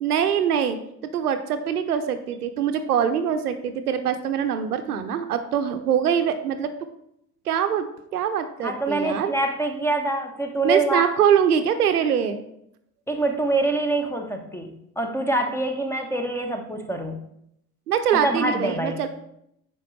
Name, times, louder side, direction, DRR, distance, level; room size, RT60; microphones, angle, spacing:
voice 1, 0.0-0.8 1.1-6.7 7.5-9.3 10.6-12.4 17.9-19.1, right 8 dB, 75° right, 9 dB, 0.6 m, -23 dB
voice 2, 8.6-11.0 13.1-17.2 18.1-19.0, right 2 dB, 5° left, 5 dB, 0.7 m, -25 dB
8.6 x 5.1 x 3.2 m, 0.76 s
figure-of-eight pair, 65°, 47 cm